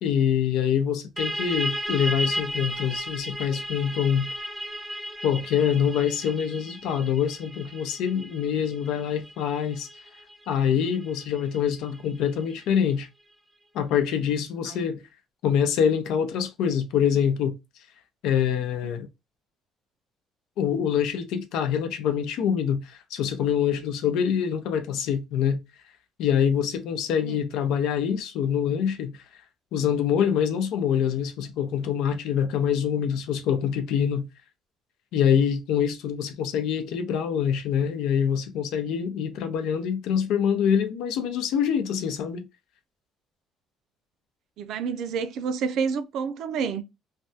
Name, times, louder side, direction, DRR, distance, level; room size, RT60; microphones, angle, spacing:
voice 1, 0.0-4.3 5.2-9.9 10.5-13.1 13.7-15.0 15.4-17.5 18.2-19.1 20.6-25.6 26.2-29.2 29.7-34.2 35.1-42.5, left 8 dB, 80° left, 0.6 m, -25 dB
sound 1, 1.2-12.5, right 1 dB, 10° right, 0.5 m, -35 dB
voice 2, 44.6-46.8, right 6 dB, 65° right, 0.4 m, -29 dB
3.2 x 2.2 x 2.7 m
cardioid pair, 160°, 0 cm